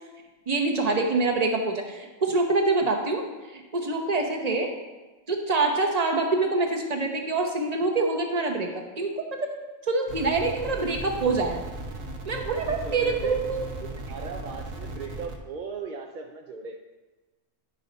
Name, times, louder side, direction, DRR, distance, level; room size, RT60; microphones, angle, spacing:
voice 1, 0.5-3.2 3.5-4.7 5.3-9.2 9.9-11.6 12.3-13.6, right 3 dB, 35° right, 2 dB, 0.9 m, -25 dB
sound 1, 10.1-15.4, right 2 dB, 80° right, 1.3 m, -37 dB
voice 2, 12.6-13.4 14.0-16.8, right 4 dB, 55° right, 2 dB, 0.5 m, -37 dB
10.5 x 5.5 x 4.0 m, 1.2 s
omnidirectional pair, 1.3 m